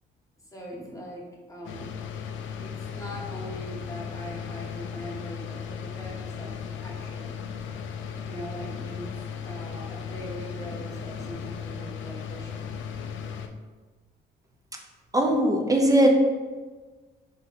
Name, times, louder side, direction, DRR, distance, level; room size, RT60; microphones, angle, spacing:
voice 1, 0.5-1.9 2.6-7.3 8.2-9.1 9.4-12.7, equal, 15° left, -3 dB, 1.3 m, -41 dB
sound 1, 1.6-13.5, left 7 dB, 75° left, 0.4 m, -36 dB
voice 2, 15.1-16.1, right 1 dB, 15° right, 2 dB, 0.7 m, -20 dB
4.0 x 2.8 x 4.0 m, 1.3 s
cardioid pair, 90°, 20 cm